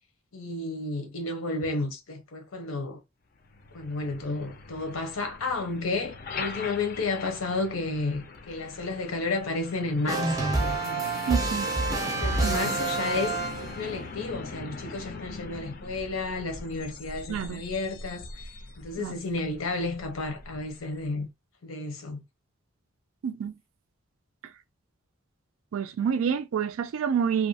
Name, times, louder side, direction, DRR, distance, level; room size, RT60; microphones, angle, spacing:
voice 1, 0.3-3.0 3.7-11.0 12.2-18.5 18.8-21.3 21.6-22.2, left 3 dB, 90° left, 0.8 m, -32 dB
Truck, 3.4-21.1, left 4 dB, 45° left, 0.4 m, -41 dB
sound 1, 10.1-13.9, right 3 dB, 15° right, 0.5 m, -28 dB
voice 2, 11.3-11.7 12.4-12.8 17.3-17.6 19.0-19.2 23.2-23.5 25.7-27.5, right 7 dB, 85° right, 0.4 m, -28 dB
2.6 x 2.1 x 2.7 m
head